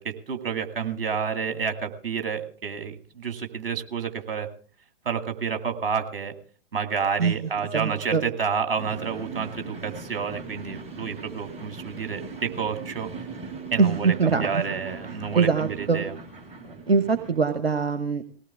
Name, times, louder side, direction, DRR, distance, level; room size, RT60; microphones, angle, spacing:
voice 1, 0.0-4.5 5.1-6.3 6.7-13.1 13.7-16.1 16.6-16.8, right 6 dB, 65° right, 7 dB, 2.3 m, -30 dB
voice 2, 7.7-8.2 13.8-14.6 15.3-16.0 16.9-18.2, right 5 dB, 80° right, 9 dB, 1.2 m, -22 dB
sound 1, 8.8-17.4, right 4 dB, 20° right, 3.6 m, -40 dB
20.0 x 17.5 x 3.5 m, 0.41 s
figure-of-eight pair, 100°, 30 cm